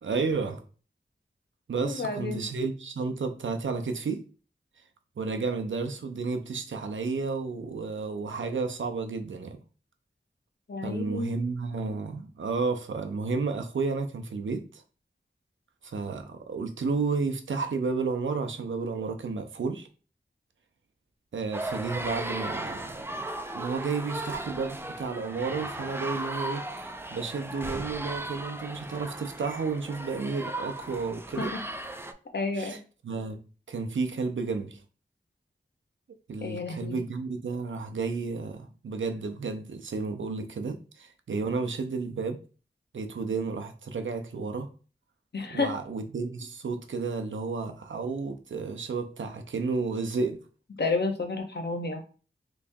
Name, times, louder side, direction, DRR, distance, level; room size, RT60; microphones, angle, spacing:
voice 1, 0.0-0.6 1.7-4.2 5.2-9.6 10.8-14.8 15.8-19.9 21.3-31.5 32.6-32.8 33.0-34.8 36.3-42.4 42.9-44.7 45.5-50.4, right 4 dB, 90° right, 0.5 m, -32 dB
voice 2, 1.8-2.4 10.7-11.3 31.4-31.6 32.3-32.8 36.4-37.0 45.3-45.7 50.8-52.0, left 3 dB, 60° left, 0.8 m, -30 dB
sound 1, 21.5-32.1, right 1 dB, 10° right, 0.4 m, -36 dB
3.5 x 3.1 x 2.6 m
wide cardioid pair, 55°, 19 cm